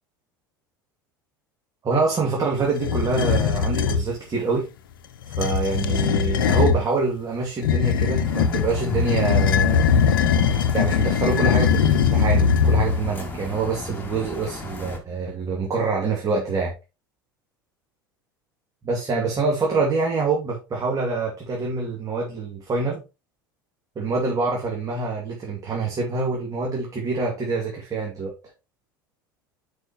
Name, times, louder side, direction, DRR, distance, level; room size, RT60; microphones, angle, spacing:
voice 1, 1.8-4.7 5.4-9.9 10.4-16.7 18.8-23.0 24.0-28.3, right 4 dB, 30° right, -1 dB, 2.3 m, -25 dB
sound 1, 2.8-4.1 5.2-6.8 7.6-13.1, left 7 dB, 75° left, 0.7 m, -20 dB
sound 2, 8.2-15.0, left 2 dB, 15° left, 2.3 m, -35 dB
10.0 x 5.0 x 3.0 m, 0.28 s
hypercardioid pair, 75°, 11 cm